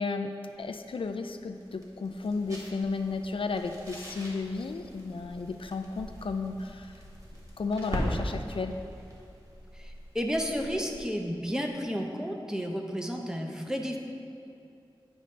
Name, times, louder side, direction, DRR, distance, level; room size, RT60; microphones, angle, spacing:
voice 1, 0.0-7.0 7.6-8.8, left 4 dB, 70° left, 6 dB, 0.3 m, -33 dB
sound 1, 0.5-11.2, equal, 40° right, 1.5 m, -41 dB
voice 2, 9.7-14.0, equal, 5° right, 2 dB, 0.7 m, -32 dB
9.9 x 5.2 x 3.2 m, 2.6 s
wide cardioid pair, 70°, 9 cm